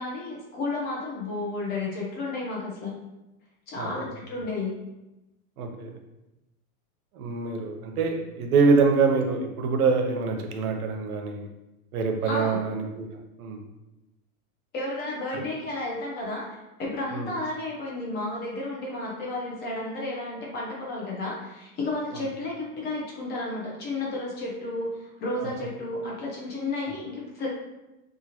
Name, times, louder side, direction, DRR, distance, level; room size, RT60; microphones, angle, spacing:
voice 1, 0.0-2.9 3.7-4.7 8.6-8.7 12.2-12.6 14.7-16.5 16.8-27.5, left 2 dB, 25° left, -3 dB, 0.5 m, -32 dB
voice 2, 5.6-5.9 7.1-11.5 11.9-13.1 13.4-13.6 15.3-15.4 17.1-17.3 22.1-22.2, right 4 dB, 75° right, 3 dB, 0.7 m, -25 dB
2.8 x 2.4 x 2.8 m, 0.98 s
hypercardioid pair, 130°, 44 cm